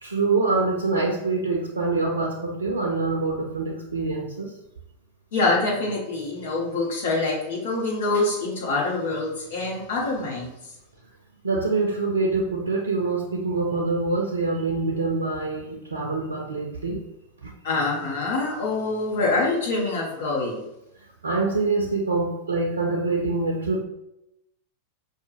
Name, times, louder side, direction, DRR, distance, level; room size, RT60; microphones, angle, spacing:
voice 1, 0.0-4.5 11.4-17.0 17.4-17.5 21.2-23.8, right 3 dB, 75° right, 0 dB, 0.5 m, -25 dB
voice 2, 5.3-10.5 17.6-20.6, left 3 dB, 55° left, -3 dB, 1.0 m, -25 dB
5.0 x 2.1 x 3.0 m, 0.87 s
figure-of-eight pair, 90°, 0 cm